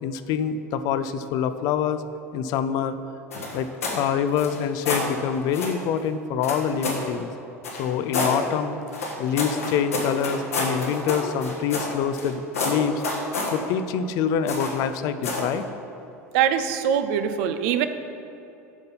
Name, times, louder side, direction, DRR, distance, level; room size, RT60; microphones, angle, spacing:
voice 1, 0.0-2.0 2.3-3.0 3.5-3.7 3.9-7.3 7.8-8.8 9.2-13.0 13.5-15.7, left 7 dB, 50° left, 11 dB, 0.5 m, -25 dB
sound 1, 3.3-4.0 4.3-5.1 5.5-5.8 6.4-7.1 7.6-8.4 8.9-12.3 12.5-13.6 14.5-14.8 15.2-15.5, left 3 dB, 80° left, 1.5 m, -28 dB
voice 2, 16.3-17.9, right 9 dB, 60° right, 9 dB, 0.5 m, -22 dB
8.2 x 5.3 x 5.4 m, 2.9 s
figure-of-eight pair, 75°, 8 cm